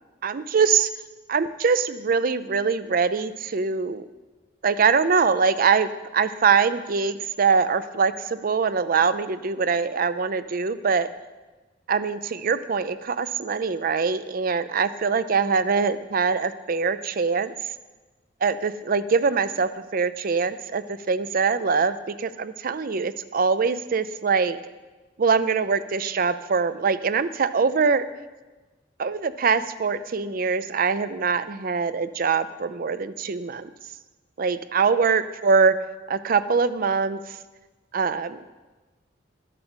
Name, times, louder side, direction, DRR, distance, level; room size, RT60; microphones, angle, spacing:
voice 1, 0.2-0.9 1.3-4.0 4.6-11.1 11.9-17.5 18.4-24.6 25.2-28.0 29.0-33.7 34.4-35.7 36.1-37.4 37.9-38.5, right 5 dB, 50° right, 14 dB, 0.5 m, -23 dB
12.0 x 7.6 x 6.2 m, 1.2 s
head